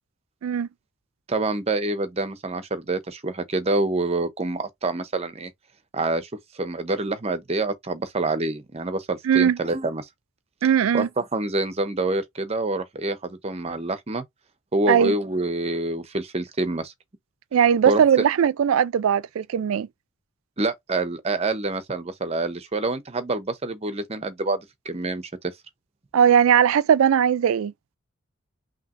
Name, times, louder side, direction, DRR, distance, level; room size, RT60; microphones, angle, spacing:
voice 1, 1.3-5.5 5.9-10.1 10.9-14.2 14.7-16.9 17.9-18.2 20.6-25.3, right 2 dB, 30° right, 0.6 m, -27 dB
voice 2, 9.2-9.6 10.6-11.1 14.9-15.1 17.5-19.9 26.1-27.7, right 8 dB, 75° right, 0.3 m, -19 dB
5.7 x 2.8 x 2.5 m
head